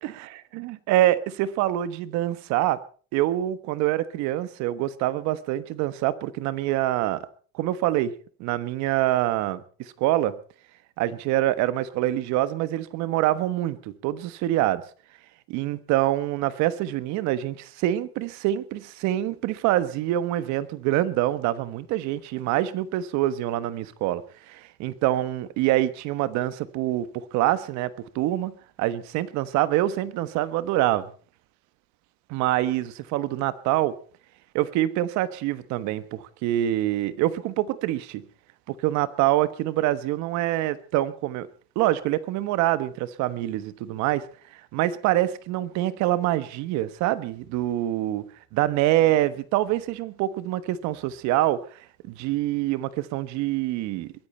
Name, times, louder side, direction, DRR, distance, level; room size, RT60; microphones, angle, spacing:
voice 1, 0.0-2.8 3.1-7.2 7.5-8.1 8.4-9.6 10.0-10.4 11.0-14.8 15.5-24.2 24.5-31.1 32.3-33.9 34.5-38.2 38.7-41.5 41.7-44.3 44.7-48.2 48.5-51.6 52.1-54.1, right 14 dB, 55° right, 1.3 m, -25 dB
22.0 x 14.5 x 4.4 m
cardioid pair, 170°, 34 cm